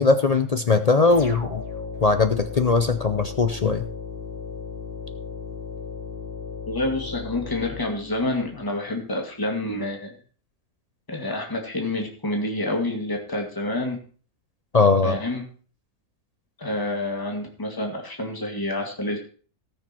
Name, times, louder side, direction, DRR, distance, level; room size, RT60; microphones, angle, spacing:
voice 1, 0.0-1.6 2.0-3.9 14.7-15.2, left 4 dB, 55° left, 9 dB, 0.4 m, -20 dB
sound 1, 1.1-8.6, left 5 dB, 40° left, 3.7 m, -36 dB
voice 2, 6.7-10.1 11.1-14.0 15.0-15.4 16.6-19.2, left 1 dB, 15° left, 1 dB, 2.2 m, -28 dB
18.0 x 6.5 x 4.4 m, 0.41 s
omnidirectional pair, 1.6 m